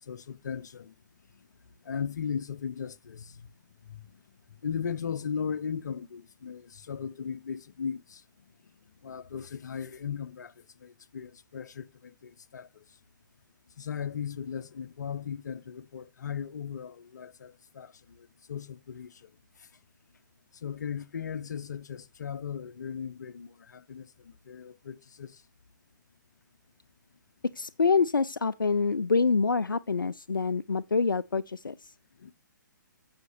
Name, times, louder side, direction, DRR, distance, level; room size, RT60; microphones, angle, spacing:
voice 1, 0.1-0.9 1.8-3.4 3.9-4.0 4.6-8.2 9.0-10.5 10.8-12.7 13.8-19.3 20.6-25.4 32.2-32.3, left 7 dB, 60° left, 0.7 m, -37 dB
voice 2, 27.6-31.8, left 4 dB, 80° left, 0.4 m, -26 dB
15.5 x 5.8 x 2.7 m
figure-of-eight pair, 130°, 11 cm